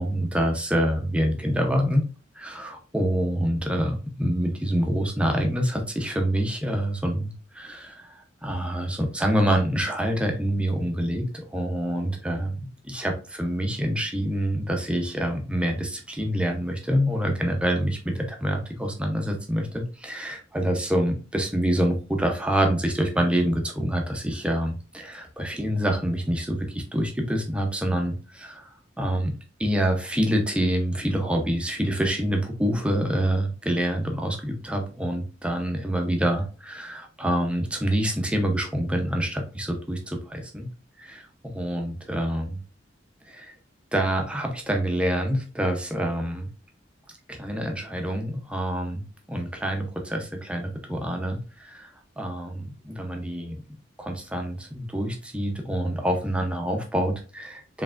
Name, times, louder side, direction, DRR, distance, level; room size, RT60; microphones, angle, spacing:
voice 1, 0.0-2.0 2.4-8.1 8.4-12.6 12.8-28.7 29.0-29.3 29.6-40.7 41.0-42.6 43.3-43.5 43.9-46.5 47.3-49.0 49.3-51.9 52.2-53.6 54.0-57.8, equal, 5° right, 2 dB, 0.8 m, -26 dB
4.8 x 3.2 x 2.5 m, 0.35 s
head